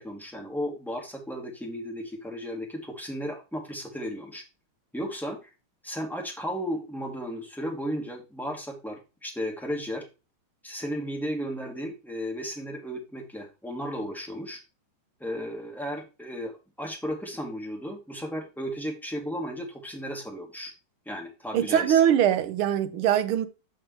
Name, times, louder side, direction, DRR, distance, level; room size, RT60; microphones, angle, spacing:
voice 1, 0.0-4.4 4.9-5.5 5.8-10.0 10.6-14.6 15.2-20.7 21.1-22.0, equal, ahead, 2.2 m, -34 dB
voice 2, 21.5-23.5, right 10 dB, 85° right, 1.8 m, -22 dB
9.5 x 5.4 x 3.1 m
omnidirectional pair, 2.3 m